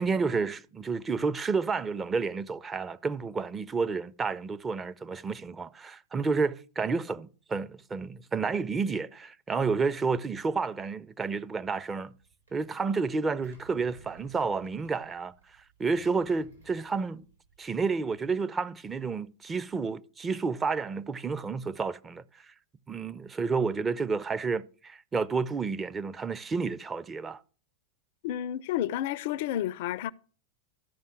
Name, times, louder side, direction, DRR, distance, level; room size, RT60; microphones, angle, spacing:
voice 1, 0.0-12.1 12.5-15.3 15.8-17.2 17.6-22.5 22.9-27.4, right 4 dB, 15° right, 0.4 m, -30 dB
Engine, 12.0-18.1, right 3 dB, 80° right, 3.6 m, -58 dB
voice 2, 28.2-30.1, left 12 dB, 50° left, 0.4 m, -31 dB
13.0 x 5.4 x 6.2 m
figure-of-eight pair, 90°, 0 cm